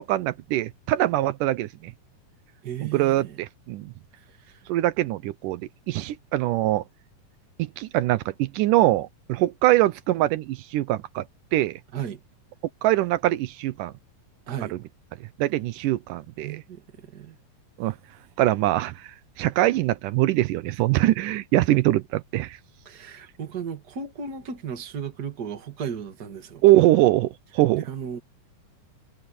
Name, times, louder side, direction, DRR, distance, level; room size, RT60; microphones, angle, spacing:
voice 1, 0.0-1.9 2.8-3.9 4.7-5.6 5.9-6.8 7.6-11.2 11.5-11.8 12.8-13.9 14.7-14.8 15.4-16.6 17.8-18.0 18.4-19.1 19.4-22.6 26.6-27.8, right 16 dB, 85° right, 2.3 m, -23 dB
voice 2, 2.6-3.4 4.2-4.6 11.9-12.2 14.5-14.8 16.4-17.4 22.9-26.6 27.7-28.2, right 7 dB, 35° right, 2.1 m, -35 dB
omnidirectional pair, 3.7 m